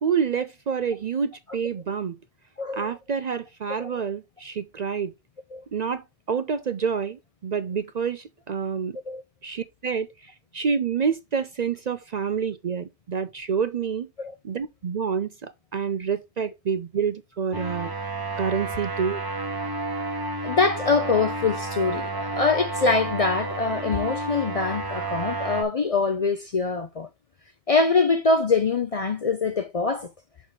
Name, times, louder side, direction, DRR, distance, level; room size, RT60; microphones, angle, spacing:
voice 1, 0.0-2.2 2.7-5.1 5.7-9.0 9.4-14.1 14.4-17.9 18.4-19.2, right 6 dB, 50° right, 0.5 m, -28 dB
voice 2, 2.6-2.9 3.8-4.0 5.5-5.6 9.1-9.2 14.2-14.3 20.4-27.1 27.7-30.1, left 4 dB, 45° left, 0.5 m, -24 dB
sound 1, 17.5-25.6, right 2 dB, 20° right, 0.9 m, -31 dB
6.2 x 4.1 x 4.6 m
omnidirectional pair, 1.1 m